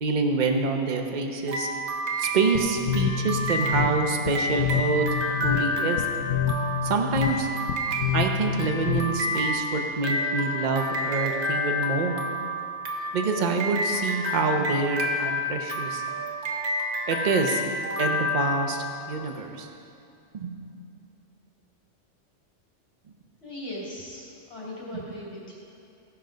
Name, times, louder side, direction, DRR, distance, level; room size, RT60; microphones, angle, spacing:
voice 1, 0.0-1.7 2.2-5.1 5.4-6.1 6.8-7.5 8.1-12.2 13.1-16.0 17.1-17.6 18.0-19.7 20.3-20.8 24.9-25.0, right 4 dB, 40° right, 3 dB, 0.9 m, -26 dB
sound 1, 1.5-19.1, left 1 dB, 65° right, 1.3 m, -29 dB
sound 2, 2.5-9.4, left 9 dB, 85° left, 1.0 m, -28 dB
voice 2, 23.4-25.5, left 1 dB, 55° left, -6 dB, 2.9 m, -38 dB
16.0 x 5.6 x 5.2 m, 2.7 s
omnidirectional pair, 1.3 m